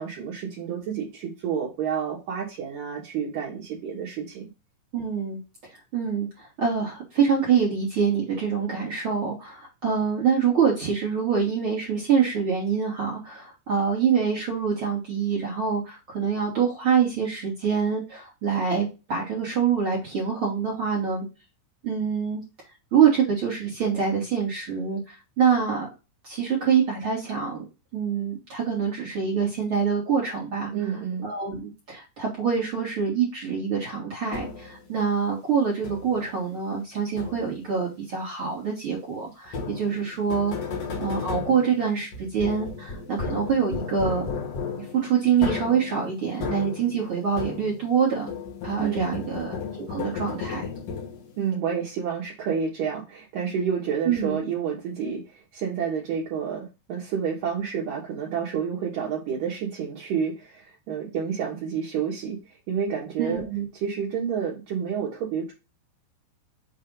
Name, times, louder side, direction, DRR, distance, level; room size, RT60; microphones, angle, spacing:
voice 1, 0.0-4.4 30.7-31.3 48.8-49.2 51.4-63.5 63.7-65.5, right 7 dB, 65° right, -4 dB, 2.5 m, -29 dB
voice 2, 4.9-5.4 5.9-6.3 6.6-21.2 21.8-22.4 22.9-25.9 26.2-27.6 27.9-30.7 31.2-40.5 41.0-44.2 44.9-48.3 48.6-50.7 54.0-54.4 63.2-63.6, right 6 dB, 50° right, -5 dB, 1.7 m, -25 dB
sound 1, 34.3-34.8 35.8-36.3 37.2-37.7 39.5-48.0 48.3-51.4, left 5 dB, 70° left, 1.5 m, -34 dB
6.7 x 2.7 x 5.3 m, 0.28 s
omnidirectional pair, 4.8 m